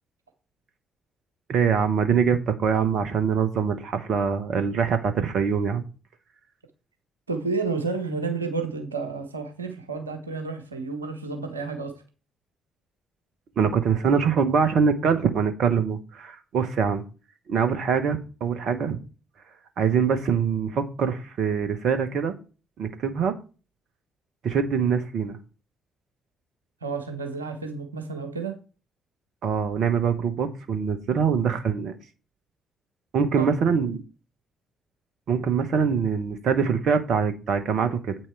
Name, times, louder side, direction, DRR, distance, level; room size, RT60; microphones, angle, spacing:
voice 1, 1.5-5.8 13.6-17.0 17.5-19.0 19.8-22.3 22.8-23.4 24.4-25.4 29.4-32.0 33.1-34.0 35.3-38.2, right 6 dB, 60° right, 9 dB, 1.1 m, -24 dB
voice 2, 7.3-12.0 26.8-28.6 33.4-33.8, right 4 dB, 85° right, 6 dB, 1.3 m, -31 dB
8.2 x 6.0 x 4.6 m, 0.35 s
figure-of-eight pair, 45°, 0 cm